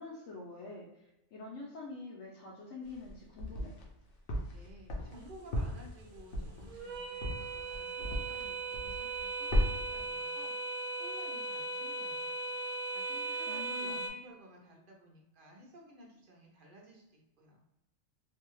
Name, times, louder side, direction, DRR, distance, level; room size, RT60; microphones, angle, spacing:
voice 1, 0.0-3.7 13.5-14.1, left 3 dB, 75° left, -5 dB, 1.0 m, -46 dB
sound 1, 2.9-3.9 4.3-8.5 8.7-9.2 9.5-10.0, equal, 60° left, 0.6 m, -34 dB
voice 2, 4.5-12.3 12.9-17.6, right 1 dB, 50° right, -1 dB, 0.7 m, -55 dB
sound 2, 5.1-14.1, right 3 dB, 70° right, 0.9 m, -39 dB
2.7 x 2.3 x 3.0 m, 0.92 s
omnidirectional pair, 1.4 m